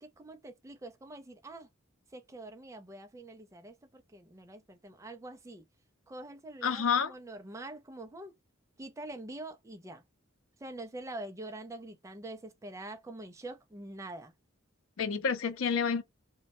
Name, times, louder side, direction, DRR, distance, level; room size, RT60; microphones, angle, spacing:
voice 1, 0.0-1.7 2.1-5.6 6.1-8.3 8.8-10.0 10.6-14.3, right 2 dB, 15° right, 0.4 m, -45 dB
voice 2, 6.6-7.1 15.0-16.0, left 6 dB, 90° left, 0.5 m, -29 dB
2.2 x 2.0 x 2.8 m
head